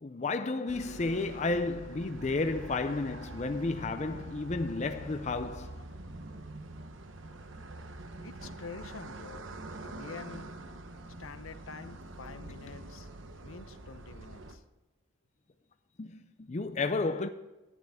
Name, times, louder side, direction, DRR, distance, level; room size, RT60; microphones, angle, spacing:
voice 1, 0.0-5.8 16.0-17.3, left 3 dB, 35° left, 0.5 m, -32 dB
sound 1, 0.7-14.6, right 2 dB, 70° right, 1.0 m, -45 dB
voice 2, 8.2-9.5 9.8-10.5 11.2-13.1 13.4-14.6, left 4 dB, 85° left, 0.9 m, -46 dB
11.5 x 11.0 x 3.6 m
head